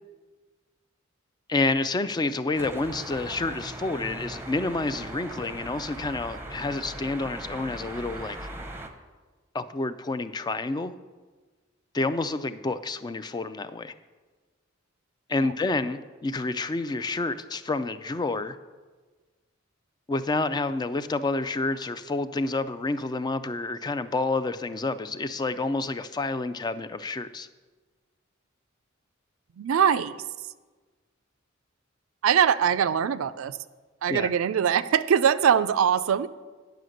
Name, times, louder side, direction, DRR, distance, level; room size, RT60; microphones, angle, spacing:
voice 1, 1.5-8.5 9.5-10.9 11.9-13.9 15.3-18.6 20.1-27.5 34.1-34.3, left 3 dB, 20° left, 12 dB, 0.3 m, -29 dB
sound 1, 2.5-8.9, right 1 dB, 10° right, 0.7 m, -39 dB
voice 2, 29.6-30.1 32.2-33.6 34.0-36.3, right 8 dB, 75° right, 14 dB, 0.4 m, -22 dB
9.3 x 5.8 x 6.4 m, 1.3 s
head